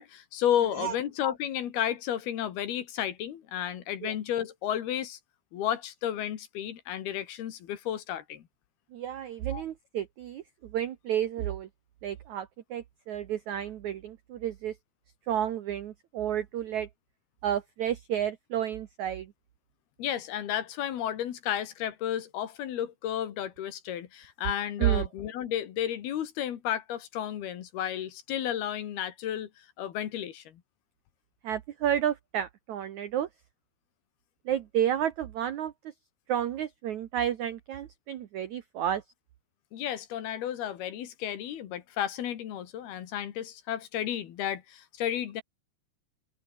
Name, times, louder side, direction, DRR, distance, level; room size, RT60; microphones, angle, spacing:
voice 1, 0.0-5.2 5.5-8.4 9.5-9.6 20.0-30.6 39.7-45.4, left 10 dB, 65° left, 3.6 m, -32 dB
voice 2, 8.9-11.7 12.0-14.7 15.3-16.9 17.4-19.3 24.8-25.1 31.4-33.3 34.4-35.7 36.3-39.0, right 10 dB, 80° right, 1.6 m, -31 dB
omnidirectional pair, 5.1 m